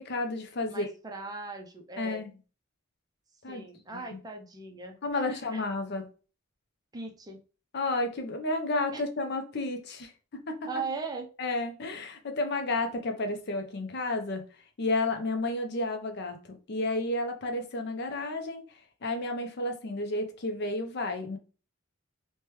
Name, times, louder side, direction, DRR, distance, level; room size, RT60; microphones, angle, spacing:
voice 1, 0.0-0.9 2.0-2.3 3.4-3.6 3.9-4.0 5.0-6.1 7.7-10.7 11.4-14.5 14.8-21.4, left 2 dB, 55° left, 0.5 m, -32 dB
voice 2, 0.7-2.2 3.5-5.6 6.9-7.4 8.9-9.0 10.7-11.3, right 4 dB, 20° right, 0.4 m, -39 dB
3.2 x 2.2 x 2.9 m
head